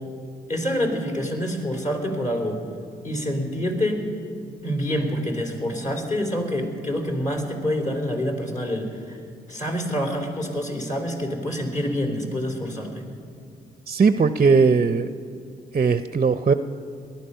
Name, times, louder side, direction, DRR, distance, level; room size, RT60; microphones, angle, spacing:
voice 1, 0.5-2.6 3.0-4.0 4.6-9.2 9.5-13.0, equal, 40° left, 1 dB, 3.6 m, -27 dB
voice 2, 13.9-15.1 15.7-16.5, right 5 dB, 35° right, 11 dB, 0.6 m, -18 dB
19.0 x 12.0 x 5.6 m, 2.5 s
supercardioid pair, 45°, 19 cm